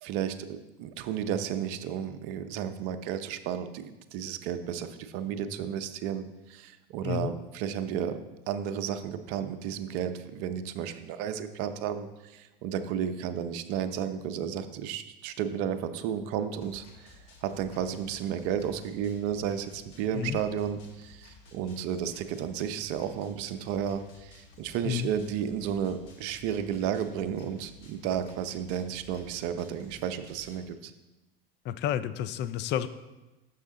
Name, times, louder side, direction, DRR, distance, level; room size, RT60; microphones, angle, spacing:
voice 1, 0.0-8.2 8.5-30.9, right 8 dB, 55° right, 9 dB, 0.6 m, -33 dB
sound 1, 16.6-30.6, left 3 dB, 55° left, 1.7 m, -54 dB
voice 2, 31.6-32.9, left 10 dB, 40° left, 13 dB, 0.4 m, -30 dB
6.3 x 5.7 x 3.7 m, 1.1 s
hypercardioid pair, 85°, 29 cm